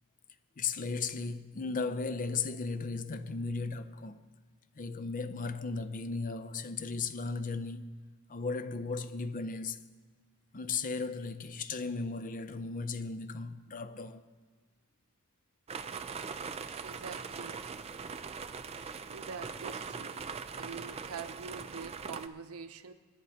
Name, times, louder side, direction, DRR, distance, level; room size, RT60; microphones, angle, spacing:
voice 1, 0.6-4.3 4.8-8.0 8.3-9.8 10.5-14.2, left 4 dB, 35° left, 0.5 m, -36 dB
sound 1, 15.7-22.3, right 5 dB, 30° right, 0.4 m, -41 dB
voice 2, 16.8-17.6 19.1-20.2 20.6-22.9, right 5 dB, 75° right, 0.7 m, -45 dB
26.5 x 10.5 x 2.8 m
head